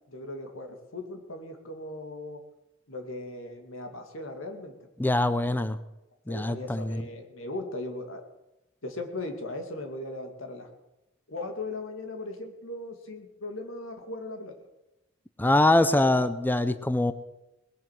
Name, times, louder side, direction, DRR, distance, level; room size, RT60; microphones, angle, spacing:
voice 1, 0.1-2.4 2.9-4.7 6.3-8.2 8.8-10.7 11.3-14.6 15.9-16.1, left 2 dB, 85° left, 5 dB, 2.6 m, -38 dB
voice 2, 5.0-5.8 6.3-7.1 15.4-17.1, left 1 dB, 10° left, 12 dB, 0.5 m, -23 dB
20.0 x 7.8 x 7.6 m, 0.94 s
head